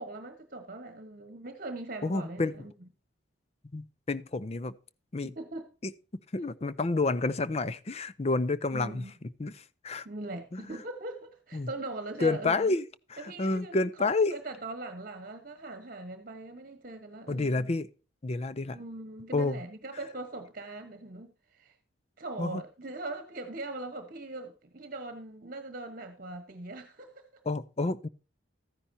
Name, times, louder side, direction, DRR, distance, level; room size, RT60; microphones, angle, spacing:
voice 1, 0.0-2.9 5.2-5.7 8.7-9.1 10.0-12.7 13.2-17.7 18.7-21.7 22.2-27.4, right 2 dB, 45° right, 1.2 m, -41 dB
voice 2, 2.0-2.5 3.7-4.7 5.1-5.3 5.8-5.9 6.3-9.0 9.4-10.1 10.5-10.6 11.5-11.7 12.2-12.8 13.1-14.4 17.3-17.9 18.2-18.8 19.3-19.6 22.4-22.6 27.5-28.1, left 3 dB, 35° left, 0.5 m, -29 dB
13.5 x 10.0 x 2.7 m
head